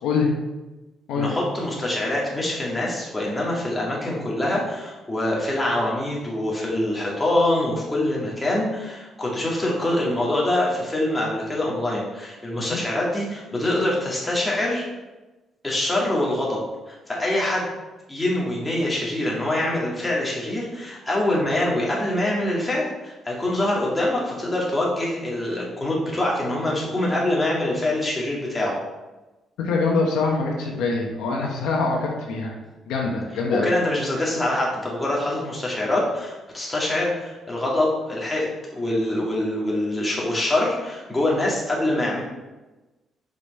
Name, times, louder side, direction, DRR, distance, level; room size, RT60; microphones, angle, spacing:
voice 1, 1.1-14.8 15.6-16.6 16.9-17.7 18.1-28.8 33.5-42.2, left 1 dB, 15° left, -4 dB, 2.1 m, -24 dB
voice 2, 29.6-32.5 32.9-33.7, left 4 dB, 90° left, 0 dB, 1.1 m, -24 dB
5.3 x 5.3 x 4.1 m, 1.1 s
cardioid pair, 90°, 0 cm